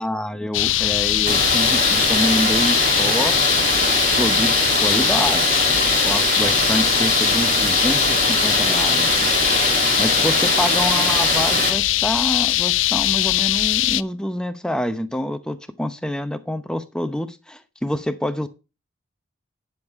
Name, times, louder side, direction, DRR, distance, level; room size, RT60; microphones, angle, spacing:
voice 1, 0.0-3.4 4.2-5.6 6.0-9.3 10.0-18.5, equal, 5° left, 0.8 m, -27 dB
sound 1, 0.5-14.0, left 15 dB, 85° left, 0.5 m, -21 dB
Water, 1.3-11.7, right 3 dB, 45° right, 2.8 m, -22 dB
11.5 x 7.4 x 3.6 m
head